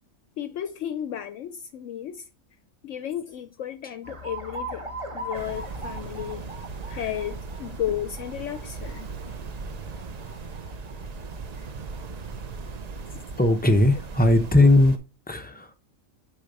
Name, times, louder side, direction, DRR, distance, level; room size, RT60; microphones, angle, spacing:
voice 1, 0.4-2.3 2.8-4.9 5.1-6.5 6.9-9.1, left 10 dB, 70° left, 0.8 m, -33 dB
Alarm, 4.0-14.1, right 1 dB, 25° right, 1.1 m, -41 dB
sound 1, 5.3-15.0, right 4 dB, 65° right, 0.4 m, -38 dB
voice 2, 13.4-15.0 15.3-15.7, left 2 dB, 15° left, 0.3 m, -18 dB
6.7 x 4.6 x 4.0 m
omnidirectional pair, 1.4 m